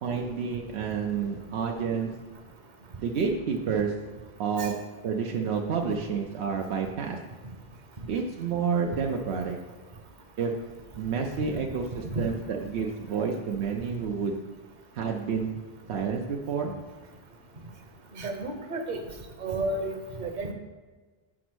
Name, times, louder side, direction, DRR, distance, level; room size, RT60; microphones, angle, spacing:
voice 1, 0.0-2.1 3.0-3.9 4.4-4.7 5.0-7.2 8.1-9.6 10.4-10.5 11.0-14.4 14.9-15.5 15.9-16.7, right 6 dB, 90° right, 1 dB, 0.9 m, -29 dB
voice 2, 18.2-19.0 19.4-20.5, right 2 dB, 45° right, 5 dB, 0.9 m, -32 dB
5.0 x 4.9 x 6.1 m, 1.3 s
omnidirectional pair, 1.1 m